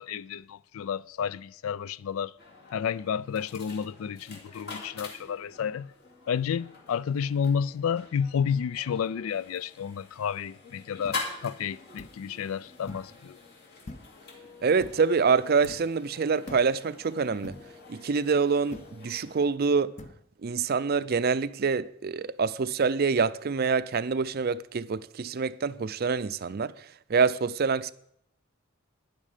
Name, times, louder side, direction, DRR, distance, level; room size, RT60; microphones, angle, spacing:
voice 1, 0.0-2.3 2.7-5.9 6.3-13.4, left 7 dB, 80° left, 0.4 m, -31 dB
sound 1, 2.4-19.5, left 3 dB, 50° left, 2.6 m, -45 dB
sound 2, 11.0-11.2 12.0-12.2 12.9-13.2 13.9-14.3 14.8-15.1 15.6-15.9 16.5-16.8 17.4-17.8 18.7-19.0 20.0-20.2, left 2 dB, 35° left, 0.7 m, -44 dB
voice 2, 14.6-17.5 17.9-19.9 20.4-26.7 27.1-27.9, right 5 dB, 45° right, 0.5 m, -26 dB
13.0 x 9.9 x 5.0 m
head